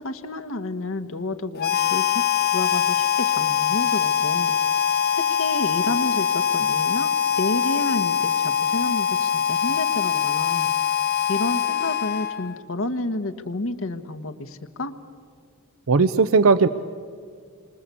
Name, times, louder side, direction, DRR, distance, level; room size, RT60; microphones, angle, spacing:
voice 1, 0.0-2.2 2.5-4.5 5.1-10.7 11.3-14.9, left 2 dB, 75° left, 7 dB, 1.3 m, -30 dB
Harmonica, 1.6-12.6, left 8 dB, 50° left, 0.7 m, -23 dB
voice 2, 15.9-16.7, right 4 dB, 75° right, 14 dB, 0.6 m, -17 dB
28.0 x 25.0 x 8.4 m, 2.1 s
head